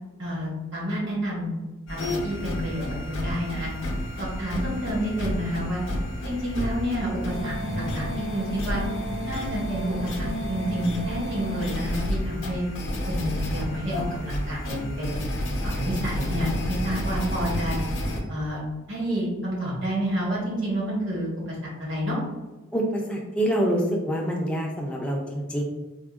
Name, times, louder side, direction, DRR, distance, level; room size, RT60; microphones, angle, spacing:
voice 1, 0.2-1.5 1.9-3.7 4.2-5.8 6.2-8.8 9.2-12.6 13.1-15.2 15.6-17.8 18.3-18.6 18.9-22.2, equal, 55° right, -5 dB, 1.0 m, -29 dB
sound 1, 1.9-18.2, equal, 60° left, 0.5 m, -30 dB
voice 2, 22.7-25.6, equal, 5° left, -1 dB, 0.3 m, -26 dB
3.5 x 2.1 x 2.3 m, 1.1 s
head